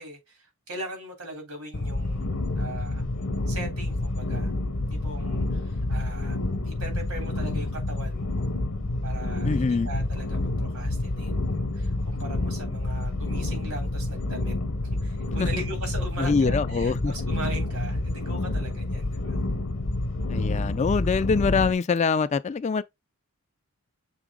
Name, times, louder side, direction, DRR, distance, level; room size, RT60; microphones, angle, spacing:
voice 1, 0.0-3.1 3.5-4.5 4.9-6.4 6.6-8.5 9.0-14.5 15.0-19.4, right 1 dB, 80° right, 3.4 m, -40 dB
sound 1, 1.7-21.7, left 2 dB, 60° left, 0.9 m, -28 dB
voice 2, 9.4-9.9 15.4-15.5 16.2-17.1 20.3-22.8, left 5 dB, 30° left, 0.3 m, -24 dB
7.0 x 3.7 x 3.7 m
head